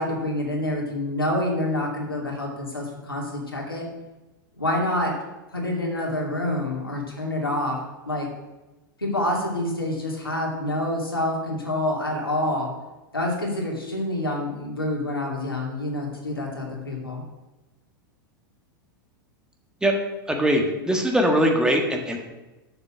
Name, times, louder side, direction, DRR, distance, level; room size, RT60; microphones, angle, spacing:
voice 1, 0.0-3.8 4.6-5.1 5.5-7.8 8.0-8.3 9.0-12.7 13.1-17.2, left 1 dB, 90° left, -2 dB, 2.6 m, -27 dB
voice 2, 20.3-22.2, equal, 5° right, 2 dB, 1.6 m, -21 dB
7.0 x 6.8 x 7.5 m, 1.1 s
figure-of-eight pair, 90°, 12 cm